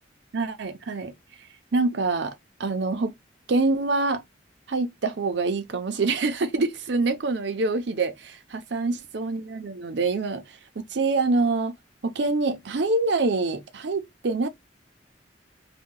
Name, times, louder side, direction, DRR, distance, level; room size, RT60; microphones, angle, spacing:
voice 1, 0.3-1.1 1.7-2.3 2.6-3.1 3.5-4.2 4.7-11.7 12.0-14.5, right 3 dB, 70° right, 0.6 m, -25 dB
2.8 x 2.3 x 3.7 m
head